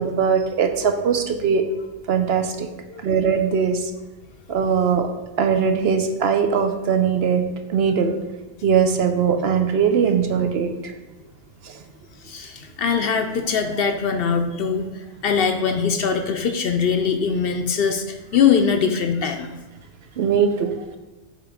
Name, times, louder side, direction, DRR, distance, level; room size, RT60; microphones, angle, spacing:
voice 1, 0.0-1.7 2.1-2.7 3.0-3.9 4.5-5.1 5.4-7.4 7.7-8.1 8.6-10.9 11.6-11.8 20.2-20.7, right 6 dB, 65° right, 7 dB, 0.8 m, -20 dB
voice 2, 12.2-19.5, left 6 dB, 60° left, 6 dB, 0.7 m, -22 dB
7.4 x 3.1 x 4.9 m, 1.1 s
omnidirectional pair, 1.2 m